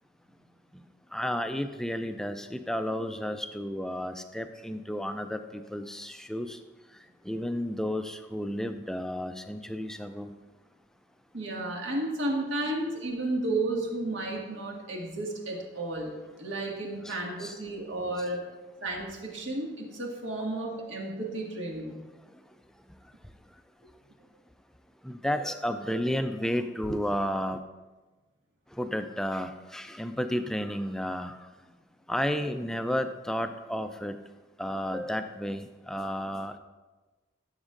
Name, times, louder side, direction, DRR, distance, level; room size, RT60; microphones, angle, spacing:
voice 1, 1.1-6.6 7.3-10.3 17.0-17.6 25.0-27.6 28.8-31.4 32.1-34.2 34.6-36.6, equal, 5° left, 8 dB, 0.3 m, -32 dB
voice 2, 11.3-16.1 16.4-18.4 18.8-22.0, right 2 dB, 80° right, -1 dB, 1.9 m, -32 dB
15.0 x 7.2 x 2.5 m, 1.2 s
head